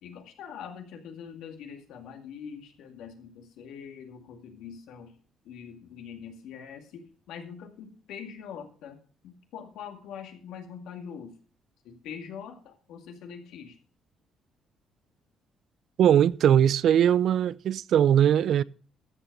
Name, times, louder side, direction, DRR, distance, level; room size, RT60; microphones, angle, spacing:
voice 1, 0.0-5.1 5.4-9.0 9.2-11.3 11.8-13.8, left 7 dB, 80° left, 2.0 m, -43 dB
voice 2, 16.0-18.6, right 9 dB, 65° right, 0.4 m, -20 dB
13.5 x 6.9 x 5.3 m
cardioid pair, 80°, 0 cm